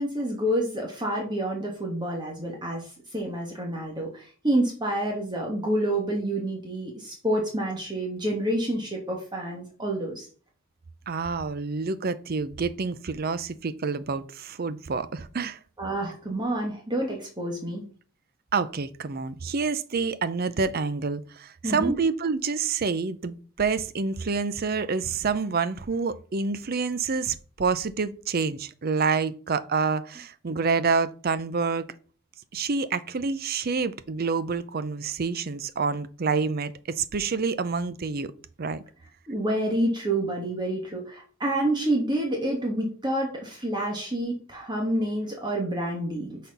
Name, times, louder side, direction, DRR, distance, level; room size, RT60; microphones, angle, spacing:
voice 1, 0.0-10.3 15.8-17.8 21.6-22.0 39.3-46.4, right 1 dB, 20° right, 1.3 m, -28 dB
voice 2, 11.1-15.6 18.5-31.9 32.5-38.3 38.6-38.8, right 4 dB, 45° right, 0.5 m, -28 dB
6.0 x 4.3 x 5.3 m
head